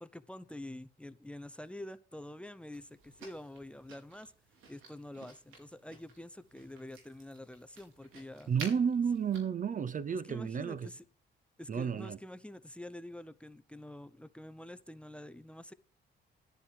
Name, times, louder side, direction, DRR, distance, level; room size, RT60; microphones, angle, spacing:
voice 1, 0.0-4.3 4.7-8.5 10.1-11.0 11.6-15.7, left 1 dB, 5° left, 0.8 m, -47 dB
sound 1, 2.7-9.4, right 4 dB, 85° right, 4.5 m, -52 dB
voice 2, 8.5-10.9 11.7-12.2, right 7 dB, 40° right, 0.7 m, -32 dB
10.5 x 10.5 x 4.9 m
cardioid pair, 90°, 20 cm